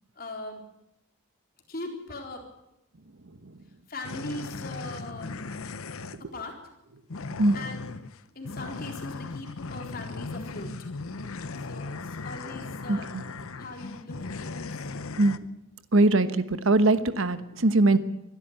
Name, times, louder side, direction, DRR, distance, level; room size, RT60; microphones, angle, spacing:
voice 1, 0.2-0.6 1.7-2.4 3.9-5.4 6.3-6.6 7.5-7.8 8.3-10.7 11.7-13.1 13.5-14.7, left 2 dB, 45° left, 2 dB, 4.1 m, -40 dB
sound 1, 4.0-6.2 7.1-15.4, left 3 dB, 80° left, 0.8 m, -37 dB
voice 2, 12.9-13.2 15.2-15.4 15.9-18.0, right 2 dB, 70° right, 12 dB, 1.1 m, -21 dB
23.0 x 13.0 x 8.9 m, 0.87 s
head